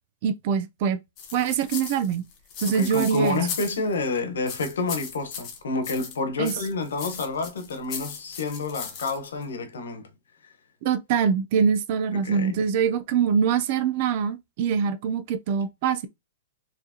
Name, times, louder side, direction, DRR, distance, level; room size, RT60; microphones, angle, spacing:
voice 1, 0.2-1.0 1.3-2.3 2.6-3.4 6.4-6.5 10.8-16.1, right 7 dB, 40° right, 0.7 m, -24 dB
sound 1, 1.2-4.1 4.5-6.2 6.4-9.4, left 7 dB, 30° left, 1.1 m, -37 dB
voice 2, 2.7-10.1 12.1-12.6, left 3 dB, 85° left, 1.1 m, -29 dB
4.6 x 3.2 x 2.9 m
hypercardioid pair, 165°, 0 cm